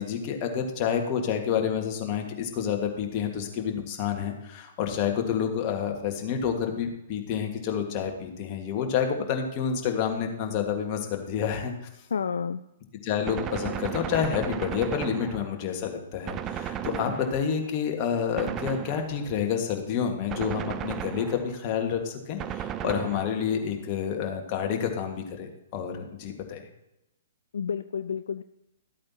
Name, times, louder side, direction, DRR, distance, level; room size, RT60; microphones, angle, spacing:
voice 1, 0.0-11.7 13.0-26.6, left 7 dB, 35° left, 3 dB, 1.6 m, -29 dB
voice 2, 12.1-12.6 27.5-28.4, left 6 dB, 70° left, 11 dB, 0.3 m, -30 dB
Gunshot gunfire, 13.3-15.8 16.3-17.7 18.4-19.4 20.3-21.7 22.4-23.6, right 10 dB, 25° right, 0.5 m, -35 dB
13.0 x 8.5 x 2.8 m, 0.89 s
figure-of-eight pair, 120°, 0 cm